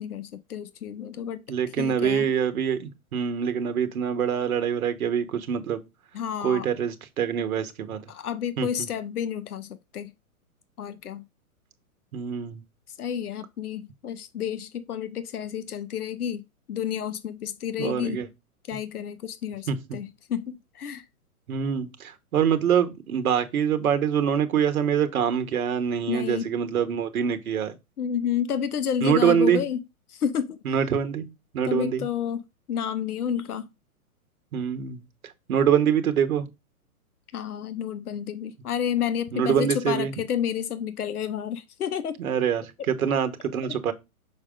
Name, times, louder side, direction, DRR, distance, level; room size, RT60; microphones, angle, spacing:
voice 1, 0.0-1.4 1.8-2.3 6.1-6.7 8.1-10.1 10.8-11.2 13.0-18.2 18.7-21.0 26.1-26.5 28.0-29.8 30.1-30.6 31.6-32.4 32.7-33.7 37.3-42.2, left 8 dB, 90° left, 0.9 m, -30 dB
voice 2, 1.5-5.8 6.4-8.0 8.6-8.9 12.1-12.6 17.8-18.3 19.7-20.0 21.5-27.7 29.0-29.6 30.6-31.3 31.5-32.0 34.5-36.5 39.3-40.1 42.2-43.9, right 8 dB, 75° right, 1.3 m, -25 dB
6.2 x 4.9 x 3.7 m
hypercardioid pair, 135°, 43 cm